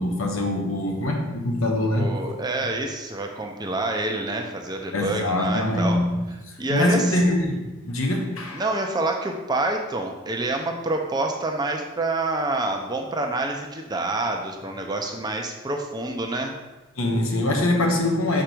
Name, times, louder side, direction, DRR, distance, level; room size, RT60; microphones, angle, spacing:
voice 1, 0.0-2.2 4.9-8.6 17.0-18.4, left 1 dB, 70° left, 1 dB, 1.2 m, -24 dB
voice 2, 2.0-6.0 6.6-7.3 8.5-16.5, right 2 dB, 20° right, 2 dB, 0.7 m, -27 dB
6.5 x 5.0 x 4.6 m, 1.1 s
head